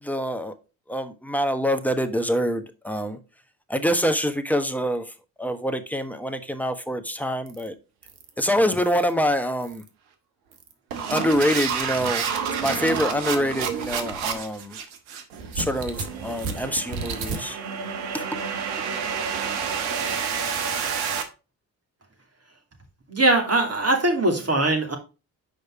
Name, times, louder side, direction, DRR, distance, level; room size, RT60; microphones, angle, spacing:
voice 1, 0.0-0.5 0.9-3.2 3.7-5.1 5.4-7.7 8.4-9.8 11.1-12.3 12.6-14.8 15.6-17.6 18.1-18.3, equal, 5° left, 1.2 m, -25 dB
sound 1, 7.5-7.7 8.0-8.3 8.8-9.1 9.6-9.9 10.5-21.2, right 6 dB, 75° right, 1.2 m, -29 dB
voice 2, 23.1-25.0, right 2 dB, 30° right, 2.8 m, -21 dB
6.5 x 5.1 x 4.8 m
hypercardioid pair, 45°, 49 cm